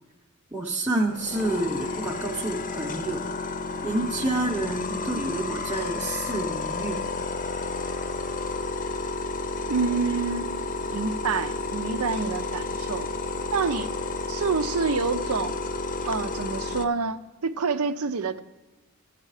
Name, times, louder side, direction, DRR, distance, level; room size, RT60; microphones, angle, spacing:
voice 1, 0.5-3.2 3.8-7.0, right 2 dB, 5° right, -3 dB, 0.8 m, -28 dB
sound 1, 1.1-16.8, left 3 dB, 40° left, 0.7 m, -31 dB
voice 2, 9.7-10.5 10.8-13.1 13.5-13.9 14.3-15.5 16.0-18.4, right 5 dB, 85° right, 12 dB, 0.6 m, -27 dB
13.0 x 8.3 x 4.9 m, 1.1 s
head